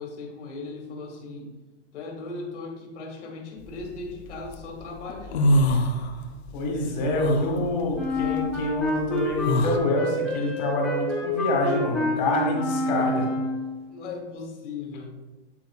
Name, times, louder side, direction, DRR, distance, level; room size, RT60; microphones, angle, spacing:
voice 1, 0.0-1.5 1.9-5.8 13.9-15.1, left 3 dB, 80° left, 1 dB, 2.1 m, -38 dB
sound 1, 3.7-4.5 4.9-6.5 6.8-9.8, equal, 65° left, 0.8 m, -24 dB
voice 2, 6.5-13.3, left 2 dB, 40° left, 0 dB, 2.0 m, -27 dB
Wind instrument woodwind instrument, 7.9-13.7, left 1 dB, ahead, 1.1 m, -27 dB
8.8 x 8.2 x 2.4 m, 1.2 s
supercardioid pair, 175°, 35 cm